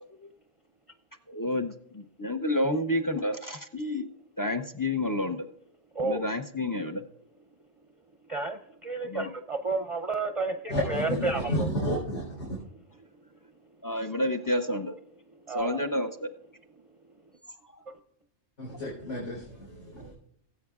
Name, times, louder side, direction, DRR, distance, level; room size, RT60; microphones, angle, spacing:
voice 1, 1.3-4.1 4.4-5.5 6.0-7.0 9.0-9.3 13.8-15.0 15.5-16.3, left 1 dB, 30° left, 8 dB, 0.4 m, -29 dB
voice 2, 8.3-11.7 15.5-15.8, right 3 dB, 40° right, 6 dB, 0.6 m, -31 dB
voice 3, 10.7-12.6 18.6-20.1, equal, 85° left, -6 dB, 4.2 m, -31 dB
18.5 x 8.4 x 2.4 m, 0.74 s
omnidirectional pair, 1.2 m